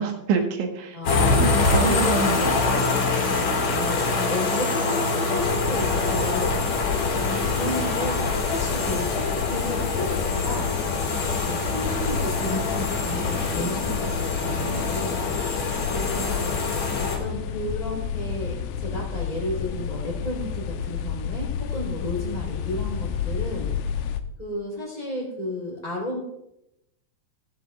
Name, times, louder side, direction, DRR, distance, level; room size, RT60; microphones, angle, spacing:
voice 1, 0.0-1.0 1.4-3.0, right 5 dB, 70° right, 3 dB, 3.4 m, -27 dB
voice 2, 0.9-2.0 3.7-10.7 11.4-24.0 24.4-26.2, left 1 dB, 10° left, -5 dB, 2.5 m, -33 dB
sound 1, 1.0-17.2, left 3 dB, 50° left, 2.2 m, -25 dB
sound 2, 5.4-24.2, left 7 dB, 85° left, 3.0 m, -31 dB
15.5 x 15.0 x 2.4 m, 0.83 s
omnidirectional pair, 5.9 m